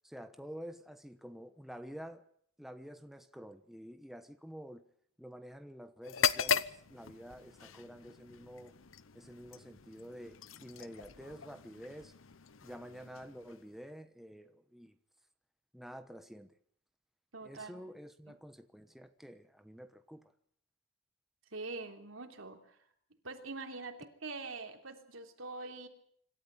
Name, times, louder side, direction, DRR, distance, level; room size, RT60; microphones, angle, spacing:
voice 1, 0.0-2.2 2.6-4.8 5.2-8.7 9.1-12.1 12.6-15.0 15.7-16.6 17.4-20.2, equal, ahead, 1.1 m, -49 dB
sound 1, 6.0-13.9, left 7 dB, 85° left, 0.9 m, -38 dB
voice 2, 17.3-17.8 18.3-18.4 21.5-22.6 23.2-25.9, right 3 dB, 85° right, 3.3 m, -44 dB
26.0 x 13.0 x 9.6 m
head